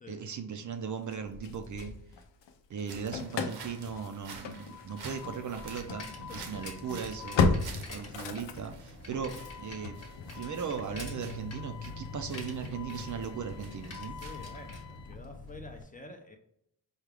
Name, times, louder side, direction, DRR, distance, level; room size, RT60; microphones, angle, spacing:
voice 1, 0.1-1.9 2.7-10.0 10.3-14.2, right 6 dB, 45° right, 6 dB, 0.5 m, -38 dB
Engine starting / Slam, 1.1-2.5 2.8-15.8, left 4 dB, 80° left, 0.6 m, -36 dB
sound 1, 2.8-14.8, right 4 dB, 65° right, 0.9 m, -50 dB
Bicycle, 4.7-15.6, left 2 dB, 35° left, 1.0 m, -49 dB
voice 2, 6.1-6.6 7.0-7.1 7.7-8.0 14.2-16.4, left 2 dB, 20° left, 3 dB, 0.5 m, -49 dB
4.8 x 2.3 x 3.3 m, 0.72 s
cardioid pair, 95°, 42 cm